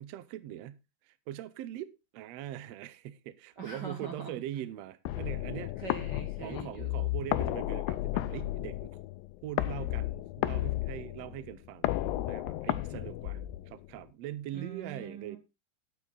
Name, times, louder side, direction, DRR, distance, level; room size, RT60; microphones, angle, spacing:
voice 1, 0.0-5.8 6.4-9.0 9.4-11.9 12.3-13.4 13.7-15.4, right 12 dB, 80° right, 1.5 m, -42 dB
voice 2, 3.6-4.3 5.8-7.0 14.5-15.4, right 4 dB, 50° right, 1.3 m, -43 dB
sound 1, 5.1-14.0, left 16 dB, 85° left, 2.5 m, -33 dB
13.0 x 8.4 x 4.0 m
omnidirectional pair, 4.0 m